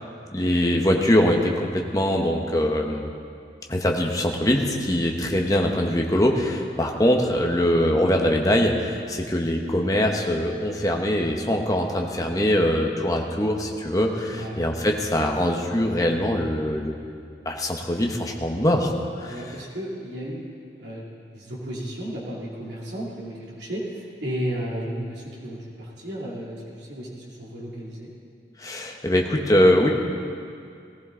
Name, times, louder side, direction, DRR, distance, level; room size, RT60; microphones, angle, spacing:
voice 1, 0.3-3.1 3.7-16.9 17.4-19.4 28.6-29.9, left 1 dB, 20° left, 1 dB, 1.1 m, -22 dB
voice 2, 14.3-14.6 19.3-20.5 20.8-21.1 21.3-28.1, equal, 85° right, -5 dB, 2.6 m, -33 dB
18.5 x 14.5 x 3.8 m, 2.4 s
head